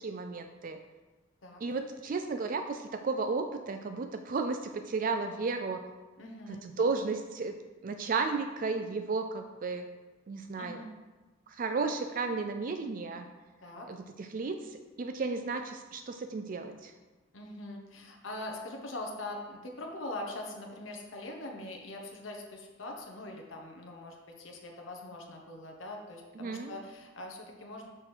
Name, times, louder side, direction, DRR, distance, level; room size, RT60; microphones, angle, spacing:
voice 1, 0.0-0.8 1.6-5.8 6.5-7.6 7.8-9.9 10.3-10.8 11.5-13.3 13.9-16.9 26.4-26.7, right 4 dB, 45° right, 6 dB, 0.4 m, -33 dB
voice 2, 6.2-6.6 10.6-10.9 13.6-13.9 17.3-27.9, left 2 dB, 85° left, 1 dB, 1.1 m, -42 dB
6.3 x 4.4 x 6.5 m, 1.2 s
head